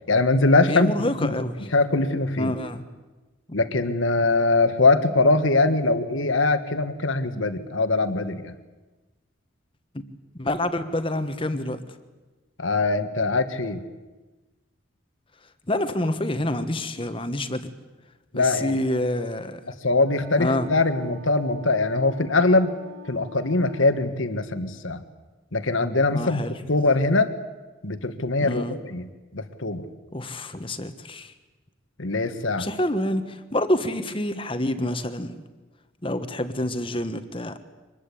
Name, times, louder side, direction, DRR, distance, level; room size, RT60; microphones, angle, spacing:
voice 1, 0.1-0.9 1.2-1.4 1.7-2.5 3.5-8.5 12.6-13.8 18.3-18.8 19.7-22.7 23.1-25.0 25.5-26.4 26.7-27.3 27.8-29.0 29.3-29.8 32.0-32.7, left 3 dB, 75° left, 10 dB, 1.6 m, -22 dB
voice 2, 0.7-1.6 2.4-2.8 10.3-11.8 15.7-17.7 18.3-19.6 20.4-20.7 26.1-26.6 28.4-28.8 30.1-31.3 32.6-35.4 36.0-37.6, left 1 dB, 25° left, 9 dB, 1.4 m, -27 dB
Wind instrument woodwind instrument, 20.0-24.2, left 2 dB, 70° right, 2.8 m, -46 dB
25.0 x 20.5 x 8.6 m, 1.2 s
head